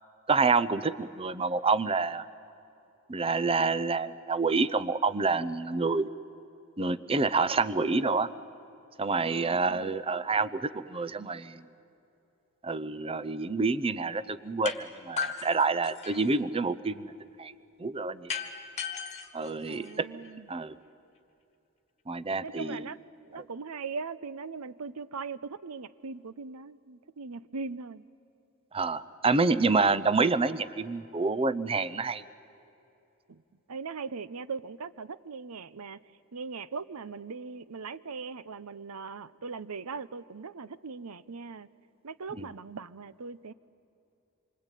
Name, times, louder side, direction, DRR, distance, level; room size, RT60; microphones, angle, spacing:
voice 1, 0.3-2.2 3.1-6.1 6.8-8.3 9.0-11.6 12.6-17.1 17.4-17.5 17.8-18.3 19.3-20.1 20.5-20.8 22.1-22.9 23.3-23.4 28.7-32.2 42.4-42.5, right 4 dB, 25° right, 15 dB, 0.7 m, -28 dB
voice 2, 9.2-9.9 19.7-20.5 22.4-23.0 23.3-28.0 33.3-33.4 33.7-36.0 36.3-41.7 42.0-43.5, right 4 dB, 80° right, 16 dB, 0.8 m, -40 dB
sound 1, 14.7-14.8 15.2-16.4 18.3-20.3, left 6 dB, 30° left, 1.7 m, -36 dB
27.0 x 24.5 x 9.1 m, 2.8 s
head